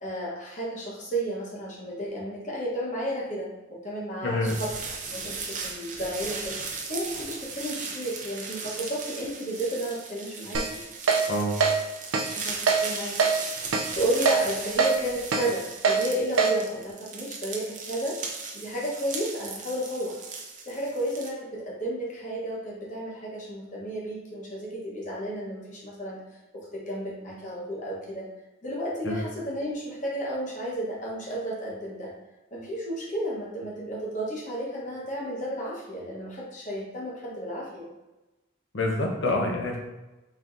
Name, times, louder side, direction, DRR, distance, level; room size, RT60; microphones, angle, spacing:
voice 1, 0.0-4.7 5.1-10.8 12.3-13.2 13.6-18.2 18.5-20.2 20.7-26.2 26.5-28.3 28.6-32.1 32.5-37.9, right 1 dB, 35° left, -4 dB, 1.1 m, -32 dB
voice 2, 4.2-4.6 11.3-11.5 29.0-29.2 38.7-39.8, left 1 dB, 65° left, 0 dB, 0.8 m, -26 dB
sound 1, 4.4-21.3, right 4 dB, 40° right, 0.6 m, -37 dB
Keyboard (musical), 10.5-10.7 11.1-11.2 11.6-11.7 12.1-12.3 12.7-12.8 13.2-13.3 13.7-13.9 14.3-14.4 14.8-14.9 15.3-15.4 15.8-16.0 16.4-16.5, right 5 dB, 80° right, 0.5 m, -21 dB
4.6 x 3.5 x 2.6 m, 1.1 s
head